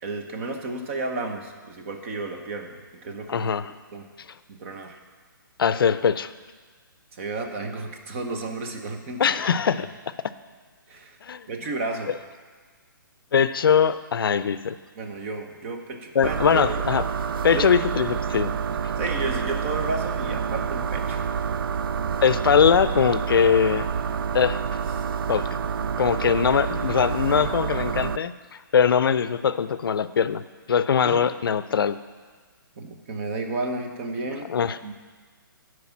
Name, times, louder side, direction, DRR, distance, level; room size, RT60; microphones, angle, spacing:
voice 1, 0.0-3.5 3.9-4.1 4.5-5.0 7.1-9.6 10.9-11.2 11.5-12.1 14.9-16.6 17.5-17.8 19.0-21.2 31.0-31.3 32.8-34.5 34.8-34.9, right 3 dB, 35° right, 4 dB, 1.0 m, -32 dB
voice 2, 3.3-3.7 5.6-6.3 9.2-10.1 11.2-11.5 13.3-14.8 16.1-17.0 17.4-18.5 22.2-23.9 24.3-24.6 25.3-25.5 26.0-28.3 28.7-30.4 30.7-32.0 34.5-34.8, left 7 dB, 80° left, 14 dB, 0.5 m, -21 dB
sound 1, 16.2-28.2, right 7 dB, 80° right, 0.4 m, -28 dB
10.0 x 4.8 x 7.1 m, 1.5 s
hypercardioid pair, 155°, 12 cm